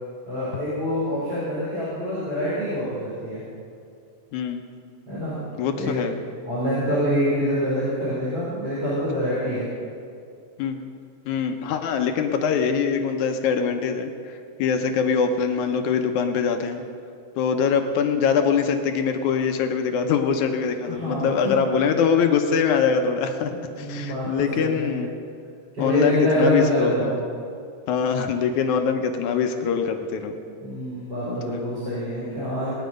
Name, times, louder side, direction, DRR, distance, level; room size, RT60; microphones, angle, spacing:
voice 1, 0.3-3.4 5.1-5.3 5.7-6.0 6.4-9.6 20.9-21.5 23.5-24.9 25.7-27.2 30.6-32.7, equal, 30° right, -10 dB, 4.8 m, -26 dB
voice 2, 4.3-4.6 5.6-6.1 10.6-10.9 11.3-16.8 17.4-23.5 23.8-25.1 25.8-27.1 27.9-30.4 31.3-31.4, left 6 dB, 75° left, 5 dB, 2.1 m, -23 dB
18.5 x 10.5 x 5.2 m, 2.4 s
omnidirectional pair, 3.9 m